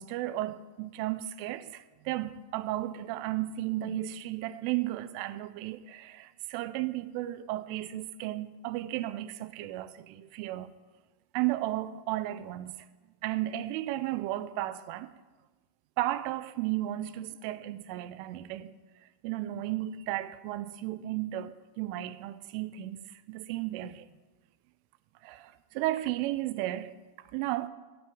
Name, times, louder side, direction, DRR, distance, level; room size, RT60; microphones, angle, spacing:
voice 1, 0.0-10.7 11.3-12.9 13.2-15.1 16.0-18.7 19.2-24.1 25.2-27.0 27.3-27.7, right 15 dB, 90° right, 3.1 m, -34 dB
10.5 x 9.3 x 9.2 m
omnidirectional pair, 5.6 m